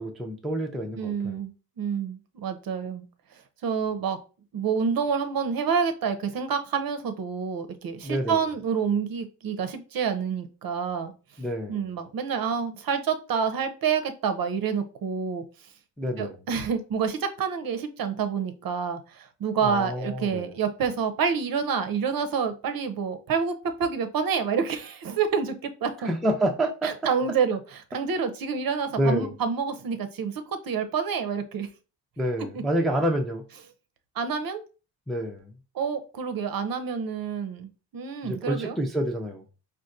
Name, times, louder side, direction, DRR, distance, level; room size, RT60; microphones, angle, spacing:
voice 1, 0.0-1.4 8.0-8.4 11.4-11.8 16.0-16.4 19.6-20.5 26.0-26.9 29.0-29.3 32.2-33.4 35.1-35.5 38.2-39.4, right 1 dB, ahead, 0.5 m, -28 dB
voice 2, 1.0-3.0 3.6-4.2 4.5-11.1 11.7-15.4 16.2-26.1 26.8-31.7 32.5-32.6 34.2-34.6 35.7-38.7, right 6 dB, 50° right, 0.6 m, -28 dB
4.0 x 2.2 x 2.5 m
supercardioid pair, 60°, 47 cm